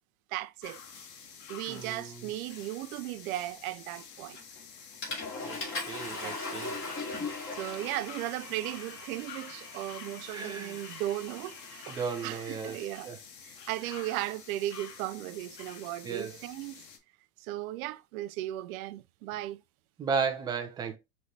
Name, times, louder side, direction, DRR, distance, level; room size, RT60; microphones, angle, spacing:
voice 1, 0.3-0.8 1.5-4.4 6.2-6.6 7.6-12.0 12.2-13.1 13.4-16.8 17.4-19.6, right 15 dB, 60° right, 0.5 m, -36 dB
sound 1, 0.6-17.0, left 6 dB, 90° left, 1.3 m, -49 dB
voice 2, 1.7-2.2 5.4-5.6 5.9-6.7 10.3-10.8 11.9-12.8 13.0-13.2 16.0-16.4 20.0-21.0, right 5 dB, 10° right, 0.3 m, -34 dB
Water / Toilet flush, 4.3-4.6 5.0-12.9, left 3 dB, 25° left, 2.3 m, -40 dB
5.1 x 3.3 x 2.7 m
supercardioid pair, 125°, 48 cm